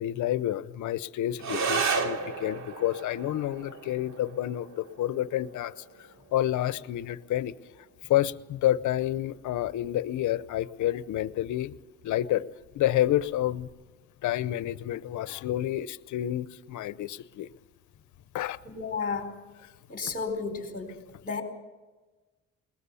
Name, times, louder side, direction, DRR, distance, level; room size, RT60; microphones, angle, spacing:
voice 1, 0.0-5.7 6.3-7.5 8.1-11.7 12.0-12.5 12.7-13.7 14.2-17.5 18.3-18.6, left 13 dB, 75° left, 16 dB, 0.8 m, -29 dB
sound 1, 1.4-10.4, right 5 dB, 65° right, 2.5 m, -35 dB
voice 2, 18.6-19.4 19.9-21.0 21.2-21.4, left 4 dB, 30° left, 5 dB, 4.6 m, -32 dB
21.0 x 19.5 x 7.1 m, 1.2 s
cardioid pair, 90°, 30 cm